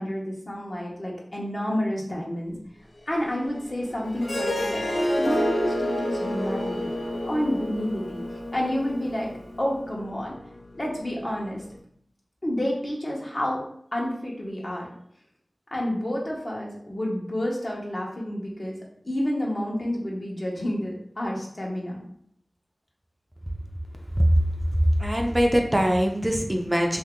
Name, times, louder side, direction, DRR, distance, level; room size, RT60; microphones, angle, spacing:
voice 1, 0.0-2.6 3.1-4.8 5.2-7.0 7.2-8.2 8.5-9.3 9.6-10.3 10.8-11.6 12.4-13.6 13.9-14.9 15.7-18.8 19.0-22.0, left 1 dB, 50° left, -3 dB, 1.0 m, -29 dB
sound 1, 2.8-11.8, left 2 dB, 65° left, 0.4 m, -39 dB
Harp, 4.2-9.4, equal, 90° left, 1.2 m, -29 dB
voice 2, 25.0-27.0, equal, 20° right, 2 dB, 0.4 m, -22 dB
2.9 x 2.8 x 3.5 m, 0.67 s
wide cardioid pair, 50°, 0 cm